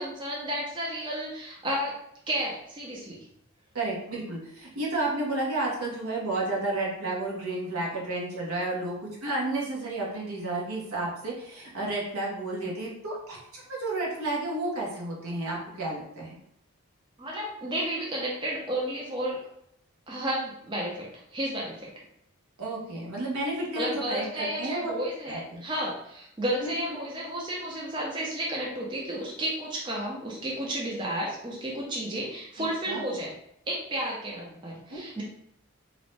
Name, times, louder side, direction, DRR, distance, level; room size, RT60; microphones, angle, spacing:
voice 1, 0.0-1.9 2.3-3.3 17.2-19.4 20.1-21.9 23.8-33.3 33.7-35.2, right 1 dB, 20° right, -3 dB, 0.4 m, -32 dB
voice 2, 3.7-16.4 22.6-24.9 25.3-25.6 26.6-26.7 32.9-33.0 34.9-35.0, right 2 dB, 75° right, -3 dB, 0.8 m, -31 dB
2.5 x 2.0 x 3.1 m, 0.74 s
head